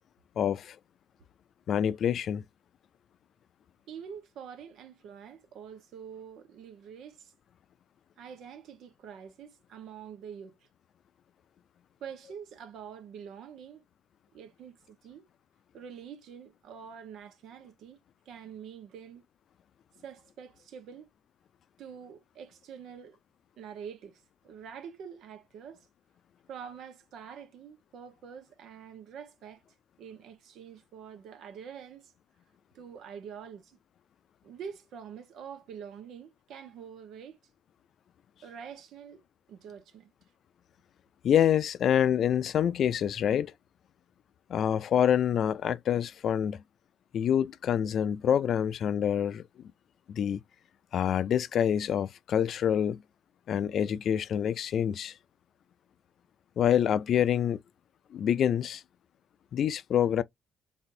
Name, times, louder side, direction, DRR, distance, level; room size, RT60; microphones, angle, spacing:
voice 1, 0.4-0.8 1.7-2.4 41.2-43.5 44.5-46.6 47.1-49.4 50.1-50.4 50.9-53.0 53.5-55.1 56.6-57.6 58.1-58.8 59.5-60.2, left 9 dB, 65° left, 0.5 m, -26 dB
voice 2, 3.9-7.3 8.2-10.6 12.0-13.8 14.3-15.3 15.7-18.0 18.2-19.2 20.0-21.1 21.8-23.2 23.6-25.9 26.5-29.6 30.0-32.1 32.7-33.8 34.4-37.4 38.4-39.2 39.5-40.1, right 7 dB, 80° right, 1.1 m, -46 dB
4.1 x 3.6 x 2.6 m
cardioid pair, 90°, 0 cm